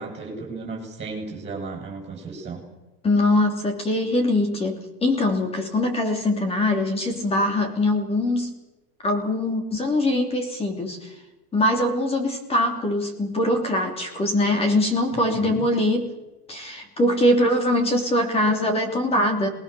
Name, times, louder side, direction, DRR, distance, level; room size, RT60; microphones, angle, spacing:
voice 1, 0.0-2.6 15.1-15.6, right 3 dB, 15° right, 1 dB, 7.0 m, -34 dB
voice 2, 3.0-8.5 9.0-11.1 11.5-16.1 16.5-19.5, left 1 dB, 10° left, 5 dB, 3.0 m, -22 dB
27.5 x 20.5 x 6.8 m, 1.1 s
supercardioid pair, 175°, 47 cm